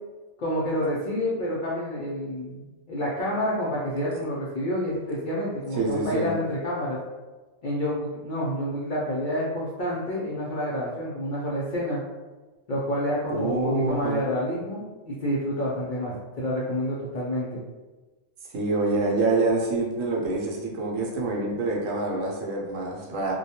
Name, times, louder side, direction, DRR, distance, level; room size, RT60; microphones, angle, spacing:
voice 1, 0.4-7.0 7.6-12.0 12.7-17.6, equal, 70° left, -6 dB, 0.4 m, -28 dB
voice 2, 5.8-6.3 13.3-14.2 18.5-23.3, right 3 dB, 75° right, -2 dB, 0.9 m, -26 dB
2.2 x 2.2 x 2.7 m, 1.2 s
omnidirectional pair, 1.4 m